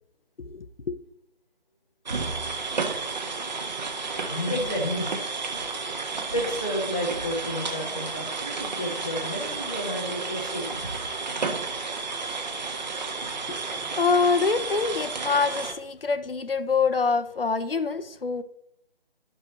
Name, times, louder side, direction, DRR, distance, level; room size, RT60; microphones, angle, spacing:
voice 1, 0.4-1.0 13.5-13.6 14.0-18.4, left 4 dB, 65° left, 0.8 m, -25 dB
sound 1, 2.1-15.7, right 4 dB, 45° right, 1.4 m, -32 dB
voice 2, 4.0-5.1 6.3-10.8, equal, 10° left, 0.7 m, -31 dB
12.0 x 5.5 x 4.2 m
figure-of-eight pair, 155°, 31 cm